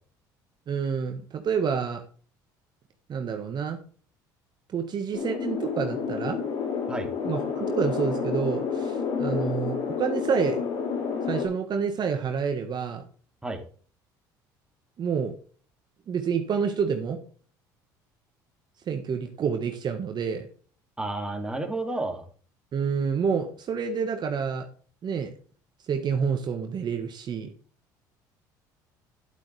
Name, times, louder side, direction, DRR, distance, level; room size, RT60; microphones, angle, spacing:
voice 1, 0.7-2.0 3.1-3.8 4.7-6.4 7.2-10.6 11.3-13.0 15.0-15.3 16.1-17.2 18.9-20.4 22.7-24.6 25.0-25.3 25.9-27.5, right 6 dB, 45° right, 6 dB, 1.5 m, -28 dB
sound 1, 5.1-11.5, left 6 dB, 65° left, 3.5 m, -29 dB
voice 2, 21.0-22.2, right 2 dB, 10° right, 3 dB, 2.7 m, -31 dB
11.0 x 8.4 x 3.4 m, 0.42 s
hypercardioid pair, 70°, 10 cm